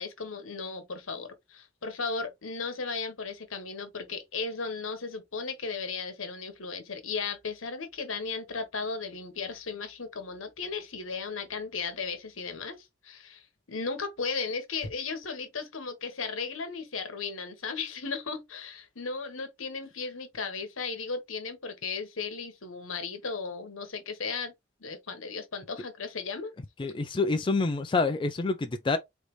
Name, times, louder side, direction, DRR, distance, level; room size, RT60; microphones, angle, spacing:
voice 1, 0.0-13.4 13.7-24.5 24.8-26.5, left 4 dB, 80° left, 1.1 m, -36 dB
voice 2, 26.8-29.0, left 3 dB, 25° left, 0.4 m, -27 dB
3.9 x 3.3 x 3.1 m
head